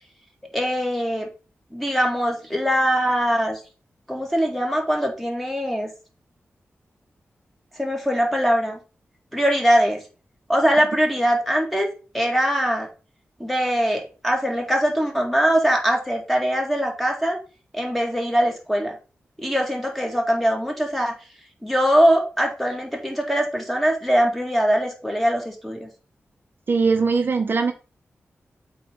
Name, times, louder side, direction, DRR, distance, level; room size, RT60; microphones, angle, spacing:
voice 1, 0.5-1.3 1.7-3.6 4.1-5.9 7.8-8.8 9.3-10.0 10.5-11.9 12.1-12.9 13.4-17.4 17.7-19.0 19.4-21.1 21.6-25.9, equal, 5° left, 1 dB, 1.9 m, -22 dB
voice 2, 26.7-27.7, right 4 dB, 50° right, 6 dB, 0.8 m, -20 dB
7.8 x 3.3 x 5.0 m, 0.34 s
wide cardioid pair, 90°, 5 cm